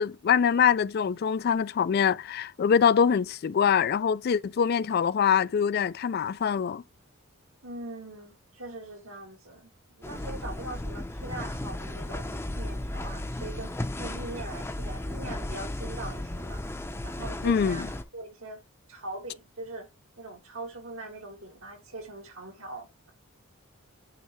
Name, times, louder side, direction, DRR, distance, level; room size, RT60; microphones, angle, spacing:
voice 1, 0.0-6.8 17.4-17.9, left 7 dB, 50° left, 0.3 m, -24 dB
voice 2, 7.6-9.7 10.0-16.6 17.0-18.6 18.9-19.9 20.2-23.1, right 2 dB, 75° right, 2.1 m, -41 dB
sound 1, 10.0-18.0, left 1 dB, 10° left, 0.6 m, -35 dB
9.4 x 3.3 x 3.1 m
head